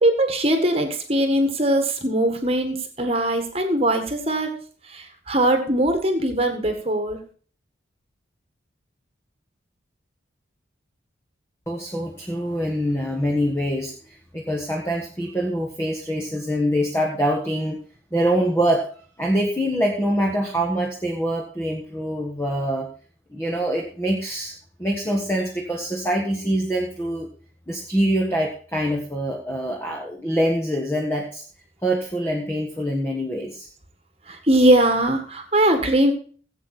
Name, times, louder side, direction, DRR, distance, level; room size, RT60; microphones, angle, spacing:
voice 1, 0.0-4.5 4.9-7.2 34.3-36.1, right 1 dB, 30° right, 6 dB, 1.7 m, -21 dB
voice 2, 11.7-17.8 18.1-18.9 19.2-22.9 23.3-24.5 24.8-27.3 27.7-31.4 31.8-33.7, equal, 15° left, 0 dB, 1.6 m, -24 dB
16.0 x 8.3 x 4.3 m, 0.43 s
head